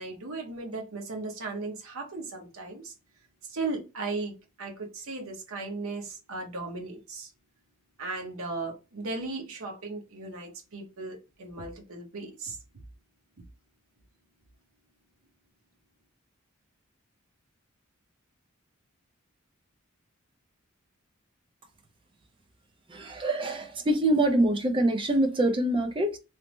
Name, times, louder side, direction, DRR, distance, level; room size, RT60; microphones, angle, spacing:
voice 1, 0.0-2.9 3.4-7.3 8.0-12.6, right 3 dB, 75° right, 0.8 m, -36 dB
voice 2, 22.9-26.2, right 1 dB, 25° right, 0.4 m, -25 dB
3.2 x 2.0 x 3.0 m
head